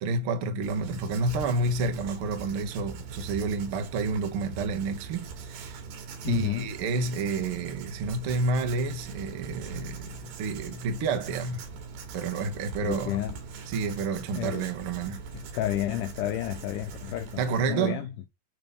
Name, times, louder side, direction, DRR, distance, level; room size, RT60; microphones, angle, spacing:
voice 1, 0.0-5.8 6.2-11.6 12.1-13.2 13.7-15.2 17.4-18.1, right 3 dB, 65° right, 1.4 m, -29 dB
Writing, 0.6-17.7, right 5 dB, 90° right, 3.8 m, -42 dB
voice 2, 6.2-6.7 12.8-13.4 14.4-14.7 15.3-18.3, left 13 dB, 80° left, 1.9 m, -31 dB
8.9 x 3.6 x 6.7 m
omnidirectional pair, 4.4 m